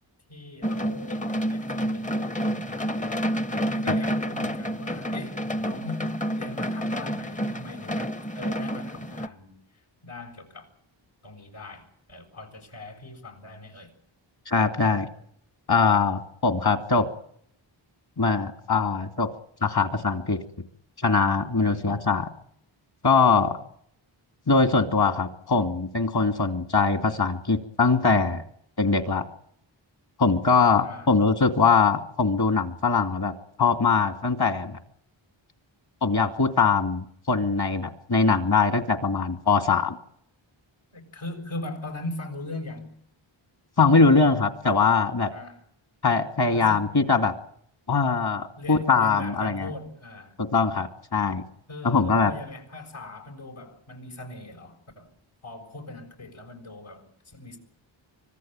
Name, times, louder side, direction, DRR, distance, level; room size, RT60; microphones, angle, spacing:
voice 1, 0.3-10.7 11.2-13.9 21.6-21.9 23.3-23.6 30.8-31.1 40.9-42.9 45.3-45.6 46.5-46.9 48.6-50.4 51.7-55.1 55.4-57.6, left 2 dB, 80° left, 6.9 m, -40 dB
sound 1, 0.6-9.3, equal, 15° left, 0.8 m, -29 dB
voice 2, 14.5-15.1 15.7-17.1 18.2-19.3 19.6-20.4 21.0-22.3 23.0-23.6 24.5-28.4 28.8-29.2 30.2-34.8 36.0-40.0 43.8-45.3 46.0-47.3 47.9-49.7 50.4-51.4 51.8-52.3, left 4 dB, 50° left, 2.6 m, -22 dB
25.0 x 17.0 x 9.0 m
cardioid pair, 60°, 48 cm